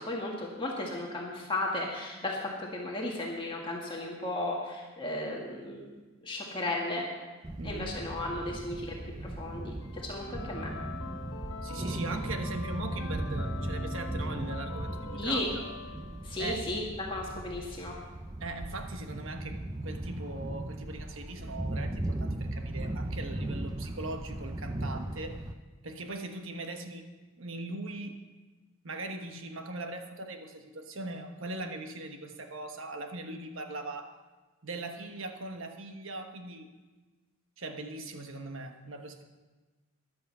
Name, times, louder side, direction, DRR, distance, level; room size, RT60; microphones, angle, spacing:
voice 1, 0.0-5.9 6.2-7.1 7.6-9.0 9.2-9.7 10.0-10.7 15.2-15.5 16.2-18.0, left 2 dB, 20° left, -2 dB, 1.8 m, -34 dB
sound 1, 7.4-25.5, right 1 dB, 15° right, 0.5 m, -37 dB
voice 2, 7.6-7.9 11.6-15.7 16.4-16.6 18.4-25.4 25.8-27.0 27.4-28.2 28.8-34.1 34.6-36.7 37.6-39.2, right 2 dB, 65° right, 5 dB, 1.2 m, -40 dB
sound 2, 9.8-16.8, left 3 dB, 65° left, 1.0 m, -44 dB
14.0 x 10.5 x 5.5 m, 1.3 s
head